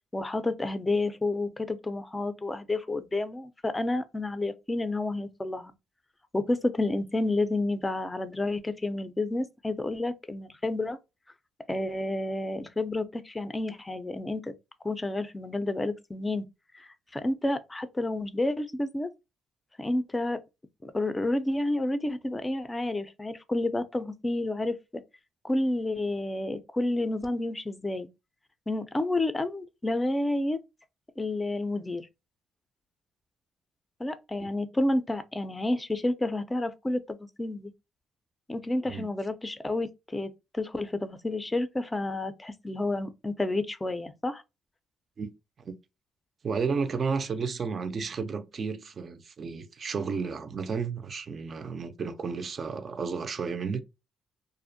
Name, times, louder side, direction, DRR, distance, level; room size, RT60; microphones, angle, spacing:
voice 1, 0.1-5.7 6.3-11.0 11.7-14.5 14.8-16.5 16.7-19.1 19.8-20.4 20.8-25.0 25.4-28.1 28.7-30.6 31.2-32.0 34.0-37.7 38.5-44.4, left 2 dB, 15° left, 0.4 m, -30 dB
voice 2, 46.4-53.8, right 5 dB, 45° right, 0.4 m, -32 dB
2.5 x 2.0 x 2.6 m
cardioid pair, 90°, 0 cm